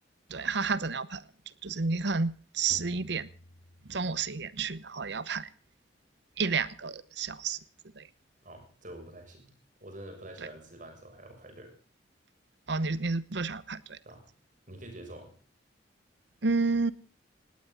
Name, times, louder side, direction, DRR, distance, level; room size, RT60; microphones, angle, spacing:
voice 1, 0.3-1.2 1.6-3.3 3.9-5.5 6.4-7.6 8.0-8.1 12.7-14.0 16.4-16.9, right 4 dB, 65° right, 0.9 m, -30 dB
sound 1, 2.7-4.6, left 1 dB, 85° left, 1.1 m, -52 dB
voice 2, 8.4-9.5 9.8-11.7 14.0-14.3 14.7-15.3, right 1 dB, 45° right, 6.8 m, -46 dB
18.5 x 18.5 x 3.9 m
head